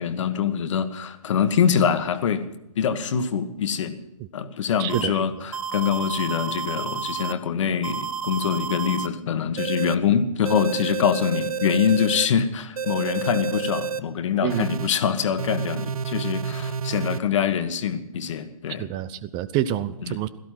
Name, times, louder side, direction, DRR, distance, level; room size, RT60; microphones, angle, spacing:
voice 1, 0.0-2.5 2.7-4.0 4.3-18.9 20.0-20.2, left 7 dB, 55° left, 10 dB, 1.6 m, -24 dB
voice 2, 4.8-5.1 14.4-14.7 18.8-20.3, right 12 dB, 25° right, 16 dB, 0.6 m, -27 dB
sound 1, 4.9-5.0 5.5-7.3 7.8-9.1 9.6-10.0 10.5-12.3 12.8-14.0 14.5-14.9 15.4-17.2, right 6 dB, 75° right, 0.8 m, -30 dB
17.0 x 14.0 x 5.9 m, 0.87 s
figure-of-eight pair, 125°, 19 cm